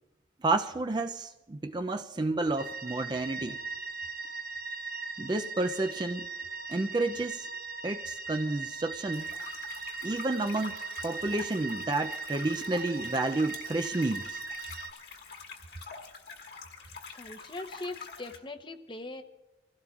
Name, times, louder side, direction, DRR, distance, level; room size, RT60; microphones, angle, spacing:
voice 1, 0.4-3.6 5.2-6.3 6.7-7.5 7.8-9.3 10.0-10.8 11.0-14.4, right 2 dB, 25° right, 0.4 m, -30 dB
sound 1, 2.6-14.9, right 4 dB, 50° right, 0.9 m, -39 dB
sound 2, 9.1-18.4, left 4 dB, 60° left, 1.6 m, -46 dB
voice 2, 17.1-19.2, left 2 dB, 25° left, 0.7 m, -41 dB
26.5 x 16.0 x 2.4 m
head